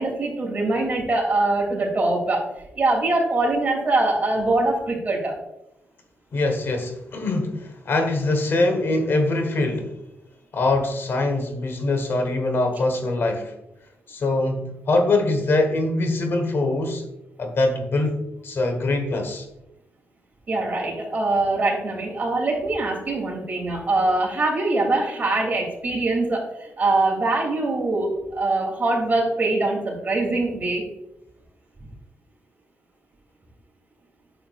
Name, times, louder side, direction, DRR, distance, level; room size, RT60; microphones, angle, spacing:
voice 1, 0.0-2.5 2.7-5.4 20.5-30.8, right 2 dB, 35° right, -1 dB, 2.7 m, -23 dB
voice 2, 6.3-9.9 10.5-13.5 14.1-17.0 17.4-19.5, left 2 dB, 55° left, 5 dB, 1.2 m, -23 dB
9.2 x 6.8 x 2.4 m, 0.87 s
cardioid pair, 100°, 5 cm